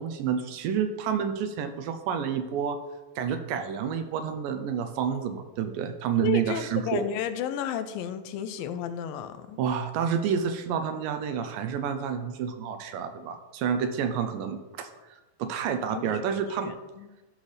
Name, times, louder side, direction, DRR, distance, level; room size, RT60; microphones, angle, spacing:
voice 1, 0.0-2.8 3.2-7.0 9.6-14.9 15.4-16.7, right 7 dB, 80° right, 7 dB, 2.2 m, -29 dB
voice 2, 6.2-9.6 15.9-16.0 16.5-17.1, left 8 dB, 80° left, 10 dB, 2.3 m, -32 dB
12.5 x 5.5 x 3.3 m, 1.1 s
omnidirectional pair, 4.1 m